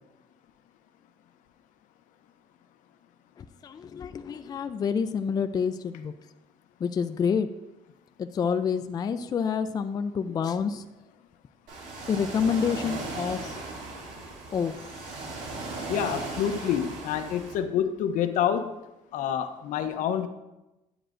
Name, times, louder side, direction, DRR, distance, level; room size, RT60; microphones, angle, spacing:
voice 1, 3.4-6.1 6.8-7.5 8.2-10.9 12.1-13.6 14.5-15.0, left 6 dB, 30° left, 10 dB, 0.4 m, -28 dB
Ocean, 11.7-17.5, right 3 dB, 70° right, 2.7 m, -37 dB
voice 2, 15.9-18.7 19.1-20.3, left 9 dB, 75° left, 9 dB, 0.7 m, -27 dB
9.9 x 7.8 x 2.5 m, 0.98 s
cardioid pair, 120°, 13 cm